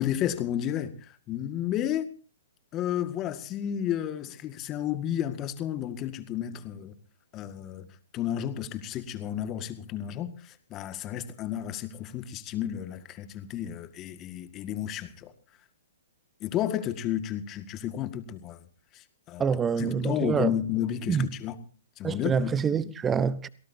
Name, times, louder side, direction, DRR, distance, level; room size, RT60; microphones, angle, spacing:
voice 1, 0.0-2.1 2.7-6.9 7.3-7.9 8.1-15.3 16.4-18.6 18.9-19.4 19.8-21.6 22.0-22.6, left 11 dB, 25° left, 1.9 m, -32 dB
voice 2, 19.4-20.5 21.1-21.3 22.0-23.5, right 6 dB, 15° right, 1.0 m, -26 dB
28.5 x 18.0 x 2.8 m
hypercardioid pair, 125°, 0 cm